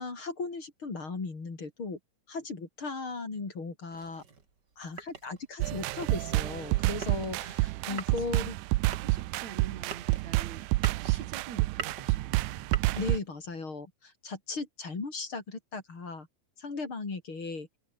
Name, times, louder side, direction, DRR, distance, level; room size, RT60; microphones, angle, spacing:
voice 1, 0.0-2.0 2.3-4.2 4.8-8.6 12.9-16.3 16.6-17.7, left 4 dB, 40° left, 4.8 m, -37 dB
sound 1, 3.9-13.6, right 5 dB, 35° right, 3.0 m, -45 dB
sound 2, 5.6-13.2, right 20 dB, 90° right, 2.1 m, -29 dB
voice 2, 8.8-10.7 11.0-12.8, right 8 dB, 65° right, 3.4 m, -45 dB
omnidirectional pair, 3.5 m